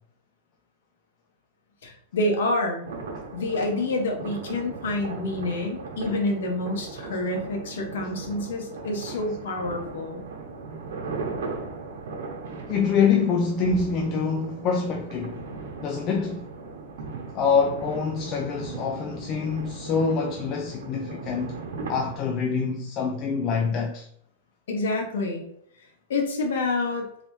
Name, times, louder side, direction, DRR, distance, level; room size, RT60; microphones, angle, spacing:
voice 1, 1.8-2.9 3.3-10.2 24.7-25.4 25.8-27.1, left 2 dB, 80° left, 1.1 m, -28 dB
sound 1, 2.8-22.2, right 4 dB, 80° right, 1.0 m, -38 dB
voice 2, 12.7-15.5 15.8-16.5 17.3-21.6 21.9-24.1, left 5 dB, 30° left, 0.3 m, -25 dB
4.1 x 3.1 x 3.1 m
supercardioid pair, 160°, 0 cm